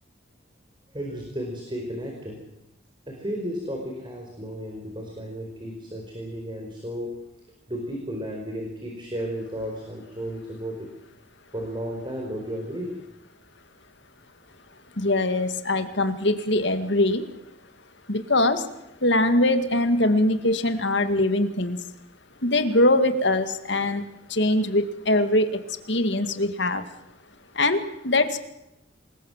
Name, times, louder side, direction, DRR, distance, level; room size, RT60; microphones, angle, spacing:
voice 1, 0.9-2.4 3.1-7.1 7.7-10.9 11.5-12.9, equal, 25° right, 1 dB, 4.9 m, -33 dB
voice 2, 15.0-17.3 18.1-18.7 19.0-21.8 22.4-26.8 27.5-28.4, left 1 dB, 60° left, 9 dB, 2.2 m, -22 dB
27.5 x 21.0 x 7.4 m, 0.87 s
head